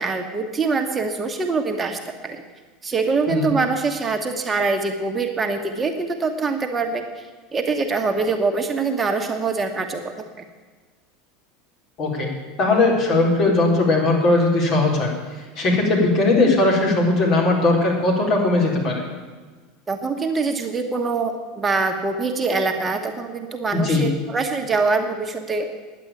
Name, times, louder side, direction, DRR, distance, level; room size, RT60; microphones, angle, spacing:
voice 1, 0.0-2.4 2.8-7.0 7.5-10.2 19.9-25.7, right 4 dB, 25° right, 5 dB, 1.3 m, -24 dB
voice 2, 12.0-12.3 12.6-15.1 15.6-19.0 23.7-24.1, left 2 dB, 50° left, -1 dB, 4.3 m, -19 dB
10.5 x 8.3 x 8.9 m, 1.4 s
hypercardioid pair, 90°, 0 cm